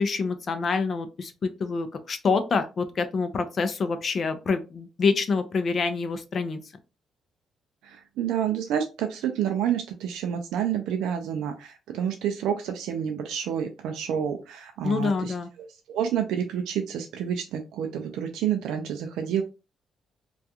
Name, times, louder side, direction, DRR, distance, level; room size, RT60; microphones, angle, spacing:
voice 1, 0.0-6.6 14.8-15.5, left 4 dB, 50° left, 9 dB, 0.4 m, -26 dB
voice 2, 7.8-15.3 15.9-19.4, right 9 dB, 85° right, 5 dB, 0.4 m, -29 dB
2.4 x 2.3 x 2.7 m, 0.29 s
cardioid pair, 90°, 0 cm